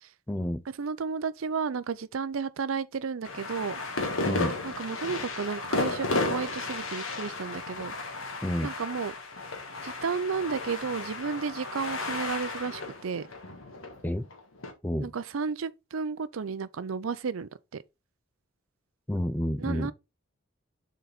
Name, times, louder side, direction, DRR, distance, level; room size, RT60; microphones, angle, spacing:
voice 1, 0.3-0.6 4.2-4.6 8.4-8.7 14.0-14.3 14.8-15.1 19.1-19.9, left 1 dB, 10° left, 0.5 m, -29 dB
voice 2, 0.8-3.8 4.6-7.9 8.6-9.1 9.8-13.3 15.0-17.8 19.6-19.9, right 5 dB, 80° right, 0.5 m, -33 dB
sound 1, 3.2-14.7, left 3 dB, 80° left, 1.5 m, -33 dB
6.7 x 4.0 x 3.9 m
head